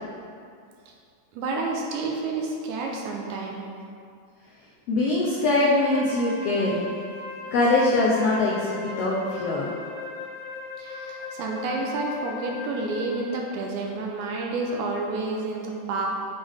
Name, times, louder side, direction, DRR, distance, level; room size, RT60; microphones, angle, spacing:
voice 1, 1.3-3.7 10.8-16.1, right 3 dB, 80° right, 0 dB, 2.0 m, -30 dB
voice 2, 4.9-6.9 7.5-9.7, left 2 dB, 90° left, -5 dB, 1.3 m, -22 dB
Wind instrument woodwind instrument, 5.7-13.4, left 3 dB, 70° left, 1.5 m, -38 dB
7.1 x 5.4 x 3.5 m, 2.3 s
omnidirectional pair, 3.7 m